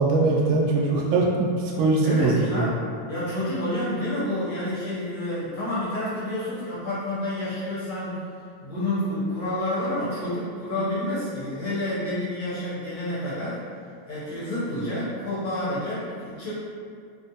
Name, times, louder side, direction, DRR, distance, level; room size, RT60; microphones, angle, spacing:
voice 1, 0.0-2.6, right 3 dB, 85° right, -4 dB, 1.4 m, -22 dB
voice 2, 2.0-2.7 3.1-8.2 8.6-13.6 14.0-16.5, left 1 dB, 60° left, -10 dB, 1.1 m, -29 dB
3.6 x 2.0 x 2.7 m, 2.3 s
omnidirectional pair, 2.2 m